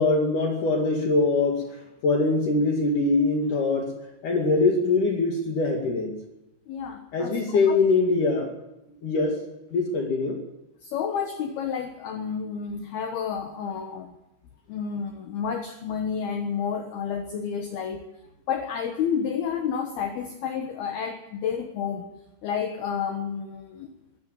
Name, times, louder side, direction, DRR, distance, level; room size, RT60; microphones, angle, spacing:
voice 1, 0.0-1.6 2.0-3.9 4.2-6.2 7.1-8.5 9.0-9.4 9.7-10.4, left 3 dB, 50° left, 2 dB, 3.3 m, -23 dB
voice 2, 6.7-7.4 7.7-7.8 10.8-14.1 14.7-18.0 18.5-22.0 22.4-23.9, left 7 dB, 65° left, 5 dB, 2.9 m, -30 dB
22.0 x 13.5 x 9.2 m, 0.91 s
omnidirectional pair, 5.4 m